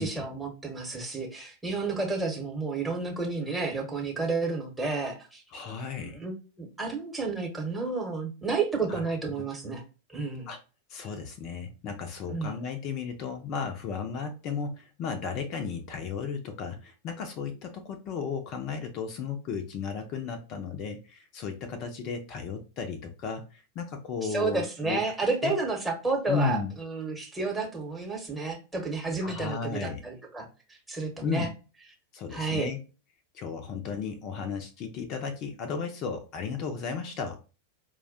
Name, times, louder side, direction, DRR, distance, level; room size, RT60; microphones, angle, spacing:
voice 1, 0.0-5.4 6.0-9.8 10.1-10.5 12.3-12.6 24.2-31.5 32.3-32.7, right 3 dB, 10° right, 1 dB, 0.9 m, -31 dB
voice 2, 5.5-6.2 8.9-9.0 10.5-10.6 10.9-25.0 25.4-25.5 26.3-26.7 29.2-30.0 31.2-31.5 32.1-32.8 33.3-37.4, left 5 dB, 40° left, 6 dB, 0.5 m, -34 dB
4.6 x 2.1 x 2.5 m, 0.33 s
figure-of-eight pair, 90°, 0 cm